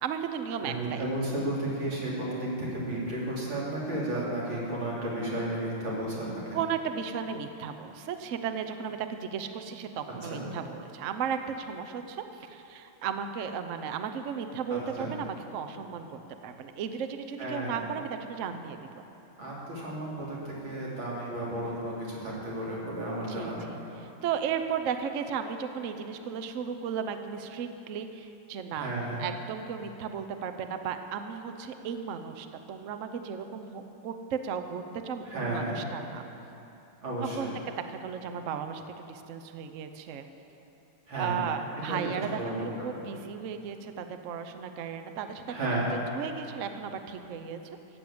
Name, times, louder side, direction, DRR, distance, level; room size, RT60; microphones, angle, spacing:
voice 1, 0.0-1.0 6.5-19.0 23.3-28.9 29.2-36.2 37.4-40.3 41.1-45.4 45.9-47.6, right 7 dB, 90° right, 7 dB, 0.6 m, -35 dB
voice 2, 0.6-6.6 10.2-10.5 14.7-15.1 17.4-17.8 19.4-23.7 28.7-29.2 35.3-35.8 37.0-37.5 41.1-41.4 41.9-42.7 42.9-43.0 45.5-45.9, right 1 dB, 60° right, -6 dB, 3.9 m, -33 dB
14.5 x 8.0 x 8.6 m, 2.9 s
omnidirectional pair, 2.4 m